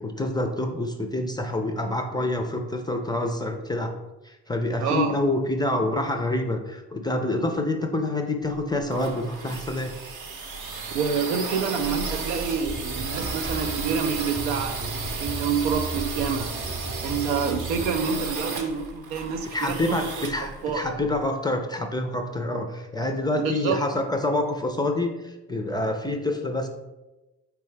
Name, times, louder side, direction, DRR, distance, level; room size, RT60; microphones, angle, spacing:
voice 1, 0.0-3.9 4.3-9.9 19.5-26.7, left 1 dB, 10° left, 4 dB, 0.3 m, -27 dB
voice 2, 4.8-5.2 10.9-16.6 17.0-20.9 23.4-23.8, right 6 dB, 80° right, 6 dB, 0.6 m, -28 dB
sound 1, 8.5-21.3, right 4 dB, 45° right, 0.8 m, -34 dB
sound 2, 12.6-18.3, right 1 dB, 10° right, 0.7 m, -36 dB
4.5 x 3.4 x 3.2 m, 1.0 s
hypercardioid pair, 50°, 49 cm